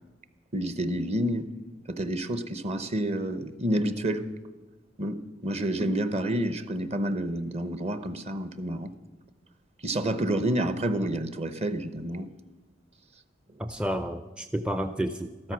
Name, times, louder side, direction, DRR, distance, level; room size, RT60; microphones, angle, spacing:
voice 1, 0.5-1.5 1.9-4.3 5.0-8.9 9.8-12.3, right 1 dB, 35° right, 12 dB, 0.9 m, -29 dB
voice 2, 13.6-15.5, equal, 5° right, 8 dB, 0.4 m, -31 dB
13.5 x 13.0 x 6.2 m, 1.2 s
head